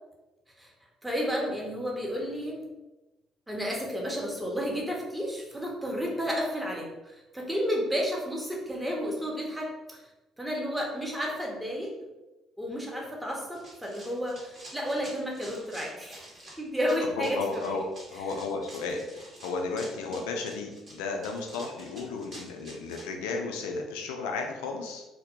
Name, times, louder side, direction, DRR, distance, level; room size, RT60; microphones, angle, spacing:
voice 1, 1.0-2.6 3.5-10.0 10.4-11.9 12.6-16.2 16.6-17.9 20.1-20.2, equal, 5° right, -2 dB, 0.7 m, -32 dB
Run, 13.5-23.0, right 1 dB, 45° right, 1.0 m, -48 dB
voice 2, 17.2-17.8 18.1-25.1, left 4 dB, 75° left, 2 dB, 0.3 m, -34 dB
2.2 x 2.1 x 2.8 m, 1.1 s
hypercardioid pair, 50°, 0 cm